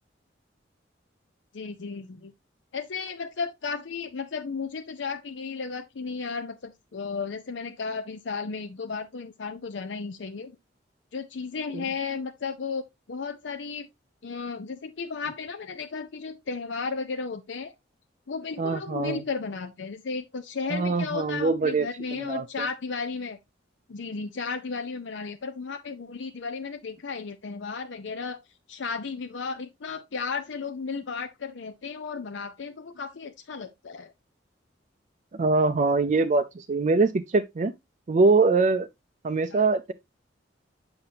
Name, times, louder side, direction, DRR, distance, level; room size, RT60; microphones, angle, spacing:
voice 1, 1.5-2.3 2.7-10.6 11.1-12.8 13.1-13.9 14.2-17.7 18.3-23.4 23.9-28.4 28.7-34.1 39.5-39.7, left 5 dB, 75° left, 0.6 m, -34 dB
voice 2, 18.6-19.2 20.7-21.9 22.2-22.7 35.4-37.7 38.1-38.9 39.2-39.9, right 3 dB, 40° right, 0.4 m, -23 dB
7.8 x 5.8 x 2.7 m
head